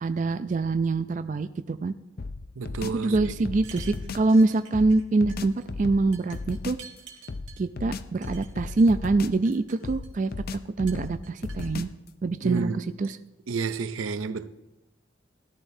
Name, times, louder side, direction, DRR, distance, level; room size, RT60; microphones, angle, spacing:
voice 1, 0.0-1.9 2.9-6.8 7.6-11.9 12.2-13.2, right 3 dB, 40° right, 0.3 m, -25 dB
sound 1, 2.2-4.3 4.7-6.9 7.3-9.5 9.8-12.1, left 3 dB, 50° left, 0.5 m, -36 dB
voice 2, 2.6-3.5 12.4-12.8 13.5-14.5, right 4 dB, 90° right, 0.6 m, -30 dB
sound 2, 3.5-5.0 5.3-5.7 6.1-7.6 8.2-8.9 9.3-10.3 10.9-11.7, right 7 dB, 70° right, 1.6 m, -48 dB
17.0 x 12.0 x 2.7 m
head